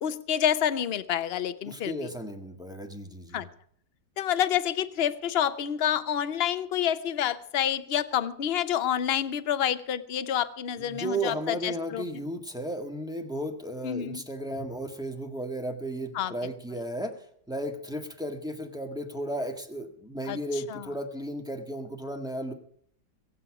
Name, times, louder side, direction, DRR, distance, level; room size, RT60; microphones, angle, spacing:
voice 1, 0.0-1.9 3.3-3.5 4.2-12.1 13.8-14.2 16.1-16.3 20.3-20.4 20.7-20.8, left 10 dB, 50° left, 13 dB, 0.7 m, -28 dB
voice 2, 1.6-3.4 10.8-17.2 17.5-22.5, right 1 dB, ahead, 3 dB, 1.4 m, -34 dB
22.5 x 8.5 x 4.8 m, 0.64 s
omnidirectional pair, 1.9 m